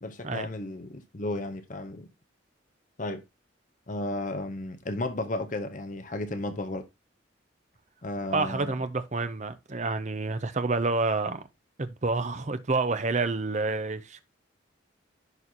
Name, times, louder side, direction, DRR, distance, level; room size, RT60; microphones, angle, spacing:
voice 1, 0.0-2.1 3.0-3.2 3.9-6.8 8.0-8.7, left 2 dB, 40° left, 0.8 m, -33 dB
voice 2, 8.3-11.4 11.8-14.2, right 3 dB, 35° right, 0.6 m, -28 dB
11.0 x 4.3 x 2.8 m
head